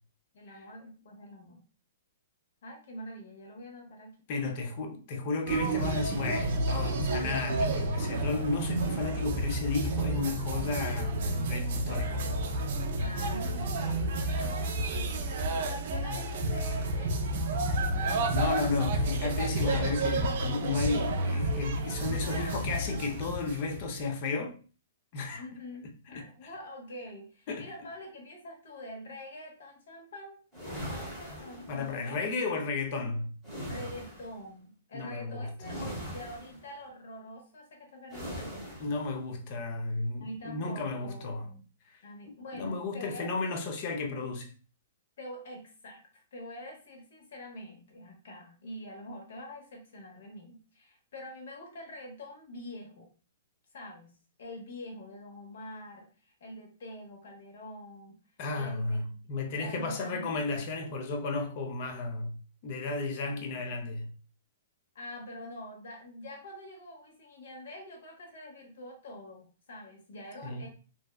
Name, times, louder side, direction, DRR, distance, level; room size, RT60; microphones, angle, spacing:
voice 1, 0.3-1.6 2.6-4.1 13.0-18.3 22.0-22.6 25.4-32.2 33.7-38.6 40.2-41.6 42.0-43.5 45.2-53.1 53.7-54.1 54.4-58.2 58.5-60.6 63.2-63.8 64.9-70.7, left 1 dB, 65° left, 0.9 m, -45 dB
voice 2, 4.3-12.3 16.1-16.2 18.3-24.6 25.1-25.4 26.1-26.2 27.5-27.7 31.7-33.3 34.9-35.5 38.8-41.5 41.9-42.0 42.5-44.5 58.4-62.4 62.6-64.1 70.4-70.7, left 3 dB, 40° left, 0.5 m, -33 dB
sound 1, 5.5-24.0, right 1 dB, 55° right, 0.4 m, -31 dB
sound 2, 30.5-32.1 33.4-34.4 35.6-36.7 38.1-39.0, equal, 5° left, 1.0 m, -40 dB
2.6 x 2.2 x 2.2 m
hypercardioid pair, 155°, 0 cm